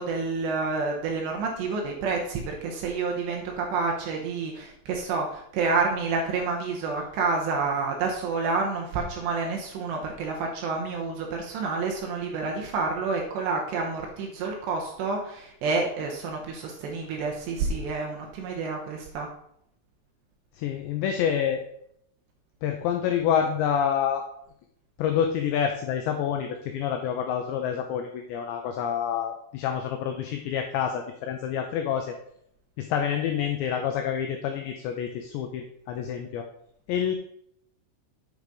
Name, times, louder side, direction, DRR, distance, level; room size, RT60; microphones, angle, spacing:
voice 1, 0.0-19.3, right 4 dB, 75° right, 1 dB, 2.8 m, -29 dB
voice 2, 20.6-21.7 22.6-24.2 25.0-32.1 32.8-36.5 36.9-37.2, left 8 dB, 85° left, 4 dB, 2.5 m, -27 dB
9.3 x 5.0 x 5.3 m, 0.74 s
omnidirectional pair, 5.9 m